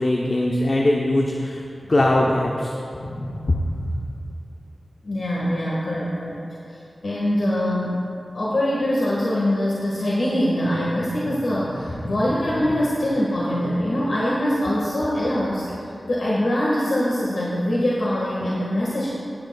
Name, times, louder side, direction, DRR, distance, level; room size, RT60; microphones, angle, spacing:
voice 1, 0.0-1.6 1.9-2.7 13.6-13.8, left 1 dB, 50° left, -1 dB, 0.8 m, -21 dB
voice 2, 2.9-3.6 5.0-6.4 6.7-6.8 7.0-8.0 8.3-19.1, left 1 dB, 75° left, -6 dB, 1.7 m, -23 dB
16.0 x 10.0 x 2.4 m, 2.5 s
wide cardioid pair, 75°, 0 cm